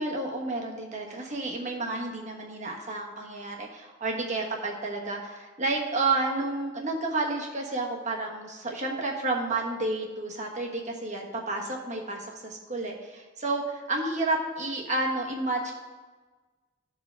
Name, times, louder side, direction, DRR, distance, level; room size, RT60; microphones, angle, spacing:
voice 1, 0.0-15.7, right 2 dB, 40° right, 0 dB, 1.3 m, -31 dB
14.5 x 4.8 x 3.4 m, 1.3 s
head